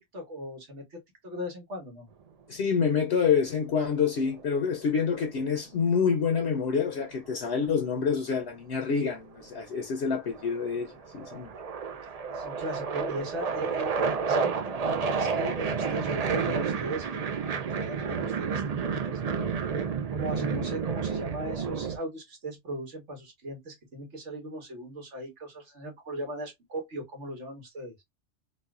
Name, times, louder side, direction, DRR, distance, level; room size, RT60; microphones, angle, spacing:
voice 1, 0.1-2.1 12.3-14.6 14.9-17.2 17.8-19.5 20.1-27.9, right 1 dB, 75° right, 1.6 m, -38 dB
voice 2, 2.5-11.5, left 6 dB, 65° left, 0.9 m, -27 dB
sound 1, 4.1-5.2 7.0-8.3 9.3-9.7 10.0-22.0, right 5 dB, 55° right, 0.4 m, -31 dB
4.1 x 2.3 x 2.3 m
omnidirectional pair, 1.2 m